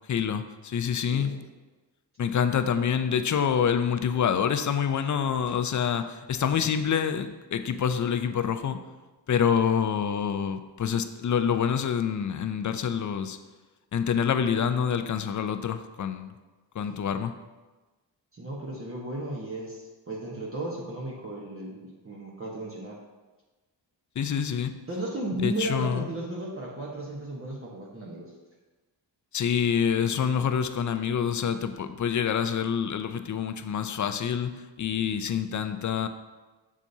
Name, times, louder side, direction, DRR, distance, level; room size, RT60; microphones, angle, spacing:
voice 1, 0.1-1.3 2.2-8.8 9.3-13.4 13.9-16.3 16.7-17.3 24.2-24.7 25.4-26.1 29.3-34.5 34.8-36.1, left 7 dB, 45° left, 9 dB, 0.5 m, -26 dB
voice 2, 18.3-23.0 24.9-28.3, right 1 dB, 30° right, -3 dB, 1.1 m, -35 dB
7.3 x 6.8 x 2.7 m, 1.2 s
wide cardioid pair, 120°, 43 cm